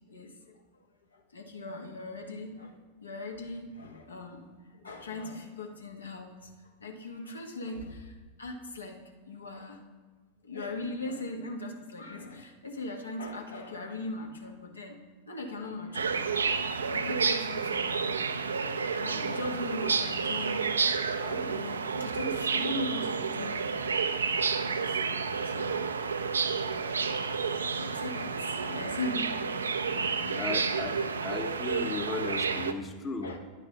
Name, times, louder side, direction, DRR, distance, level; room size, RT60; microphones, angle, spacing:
voice 1, 0.1-0.8 1.1-2.8 3.0-6.5 6.8-9.8 10.4-15.0 15.3-18.1 19.0-23.7 24.0-24.1 24.6-25.0 25.4-25.8 26.4-26.5 26.8-27.0 27.4-30.4 30.7-30.8 33.2-33.4, left 2 dB, 75° left, 3 dB, 1.1 m, -40 dB
sound 1, 15.9-32.7, right 5 dB, 70° right, 0.4 m, -30 dB
voice 2, 30.4-31.0 31.2-33.4, left 4 dB, 20° left, 7 dB, 0.8 m, -36 dB
10.0 x 6.0 x 4.0 m, 1.5 s
figure-of-eight pair, 90°, 0 cm